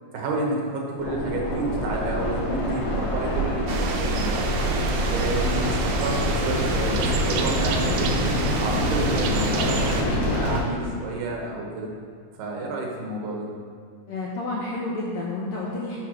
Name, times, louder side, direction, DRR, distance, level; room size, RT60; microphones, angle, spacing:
voice 1, 0.1-4.5 5.1-8.1 8.6-11.9 12.4-13.5, right 2 dB, 70° right, -2 dB, 2.6 m, -30 dB
sound 1, 1.0-10.6, equal, 55° left, 2.6 m, -25 dB
sound 2, 3.7-10.0, right 5 dB, 90° right, 2.5 m, -30 dB
voice 2, 14.1-16.0, left 2 dB, 75° left, -5 dB, 1.6 m, -30 dB
6.8 x 4.6 x 6.1 m, 2.2 s
omnidirectional pair, 4.2 m